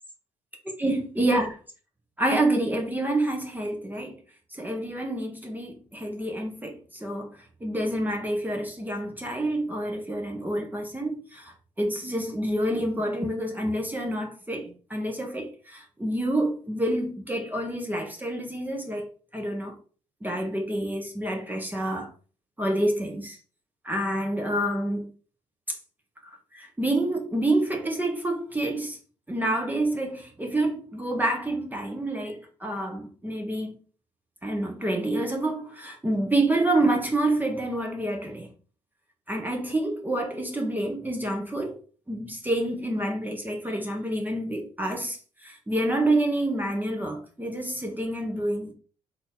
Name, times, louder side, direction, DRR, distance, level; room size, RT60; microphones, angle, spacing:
voice 1, 0.8-1.6 2.2-4.2 4.5-19.1 19.3-19.7 20.2-22.1 22.6-23.4 23.8-25.1 25.7-25.8 26.5-29.0 29.3-33.8 34.4-38.5 39.3-41.8 42.1-48.7, right 1 dB, 10° right, 1.2 m, -28 dB
3.9 x 2.8 x 3.8 m
figure-of-eight pair, 45°, 16 cm